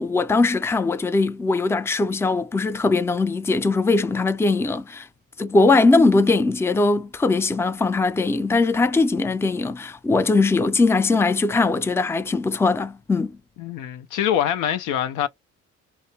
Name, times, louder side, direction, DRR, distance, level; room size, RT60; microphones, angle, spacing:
voice 1, 0.0-5.1 5.4-13.4, left 3 dB, 10° left, 0.4 m, -20 dB
voice 2, 13.6-15.3, left 10 dB, 90° left, 0.5 m, -24 dB
4.3 x 2.0 x 2.7 m
cardioid pair, 90°, 30 cm